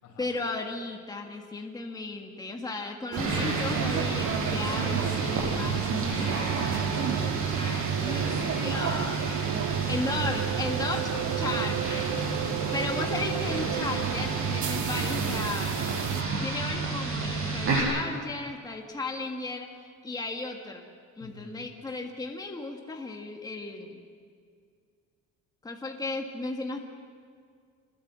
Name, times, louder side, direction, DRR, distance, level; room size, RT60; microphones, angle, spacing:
voice 1, 0.2-9.3 9.9-11.0 11.4-12.1 12.7-15.8 16.4-19.7 20.0-20.8 21.2-24.0 25.6-26.8, left 3 dB, 15° left, 2 dB, 1.7 m, -35 dB
sound 1, 3.1-16.2, right 8 dB, 80° right, 2.1 m, -32 dB
sound 2, 3.2-17.8, right 4 dB, 45° right, 8.0 m, -30 dB
voice 2, 5.5-6.0 9.8-10.4 10.9-11.7 12.3-13.0 21.2-21.7, left 5 dB, 70° left, 1 dB, 5.9 m, -44 dB
26.5 x 21.5 x 7.6 m, 2.2 s
cardioid pair, 170°, 29 cm